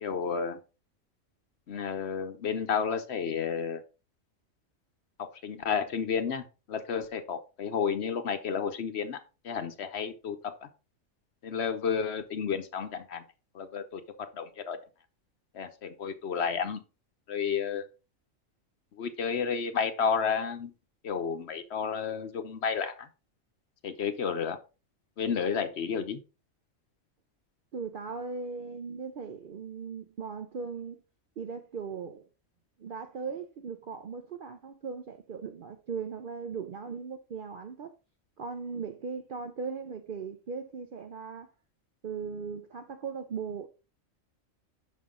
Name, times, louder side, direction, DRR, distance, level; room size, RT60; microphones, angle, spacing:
voice 1, 0.0-0.6 1.7-3.8 5.2-9.2 9.4-10.7 11.4-13.2 13.5-14.8 15.5-16.8 17.3-17.8 19.0-20.7 21.0-23.1 23.8-24.6 25.2-26.2, left 6 dB, 60° left, 0.9 m, -31 dB
voice 2, 27.7-31.0 31.4-32.3 32.8-37.9 38.4-41.5 42.0-43.7, right 5 dB, 55° right, 0.6 m, -38 dB
5.8 x 5.6 x 3.7 m
omnidirectional pair, 1.4 m